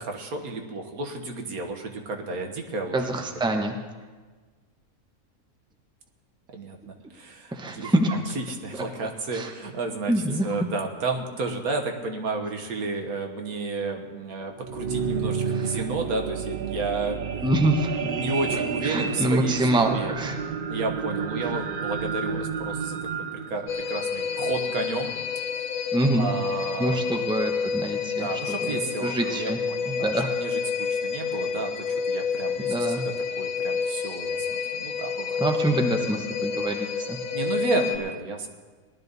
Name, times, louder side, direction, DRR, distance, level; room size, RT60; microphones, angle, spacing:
voice 1, 0.0-3.0 6.5-7.9 8.4-10.1 10.4-17.2 18.0-20.1 20.7-23.0 23.3-25.1 26.2-27.2 28.1-33.0 33.4-35.4 37.3-38.5, right 3 dB, 80° right, 3 dB, 1.7 m, -32 dB
voice 2, 2.9-3.8 7.5-8.2 9.3-9.5 10.1-10.5 17.4-18.1 18.8-20.4 25.9-26.3 26.8-29.6 29.9-30.4 32.7-33.0 35.4-37.2, right 1 dB, 5° right, 3 dB, 0.8 m, -25 dB
sound 1, 14.4-24.9 25.5-25.6, right 6 dB, 55° right, 0.6 m, -31 dB
sound 2, 23.7-38.0, left 6 dB, 80° left, 1.7 m, -29 dB
19.0 x 12.0 x 4.1 m, 1.4 s
omnidirectional pair, 1.5 m